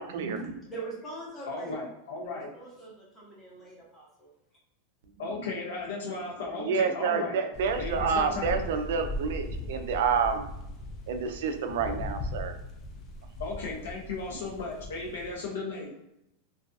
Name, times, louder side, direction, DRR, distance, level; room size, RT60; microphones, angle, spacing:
voice 1, 0.0-0.6 6.0-6.1 6.6-10.4 11.1-12.5, right 5 dB, 70° right, 7 dB, 0.3 m, -29 dB
voice 2, 0.7-1.8 2.2-4.3, right 3 dB, 10° left, -5 dB, 0.7 m, -42 dB
voice 3, 1.5-2.5 5.2-7.4 7.8-8.6 13.4-15.9, left 3 dB, 85° left, -2 dB, 0.6 m, -35 dB
sound 1, 7.5-15.3, left 1 dB, 25° left, 0.3 m, -38 dB
2.3 x 2.3 x 2.5 m, 0.81 s
supercardioid pair, 165°, 0 cm